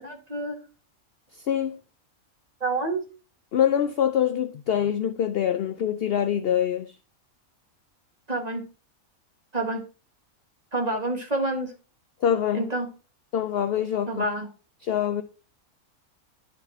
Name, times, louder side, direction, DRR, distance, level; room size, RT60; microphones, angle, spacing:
voice 1, 0.0-0.6 2.6-3.0 8.3-8.6 9.5-9.8 10.7-11.7 12.5-12.9 14.1-14.5, right 2 dB, 30° right, 1.8 m, -28 dB
voice 2, 1.3-1.8 3.5-6.9 12.2-12.7 13.3-14.3 14.8-15.2, left 9 dB, 70° left, 0.5 m, -25 dB
11.5 x 4.1 x 4.2 m
omnidirectional pair, 1.5 m